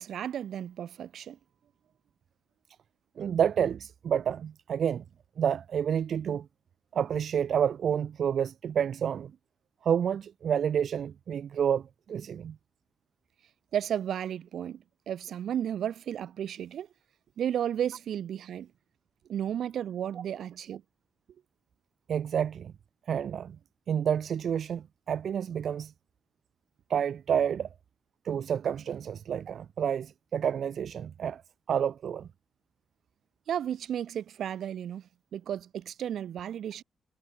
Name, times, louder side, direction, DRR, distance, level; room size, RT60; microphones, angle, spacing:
voice 1, 0.0-1.4 13.7-16.9 17.4-18.7 19.3-20.8 33.5-35.0 35.3-36.8, right 9 dB, 75° right, 1.8 m, -33 dB
voice 2, 3.2-5.0 5.4-6.5 6.9-9.3 9.8-11.8 12.1-12.6 22.1-22.7 23.1-23.6 23.9-25.9 26.9-27.7 28.2-31.4 31.7-32.3, right 8 dB, 60° right, 0.6 m, -29 dB
wide cardioid pair, 155°, 0 cm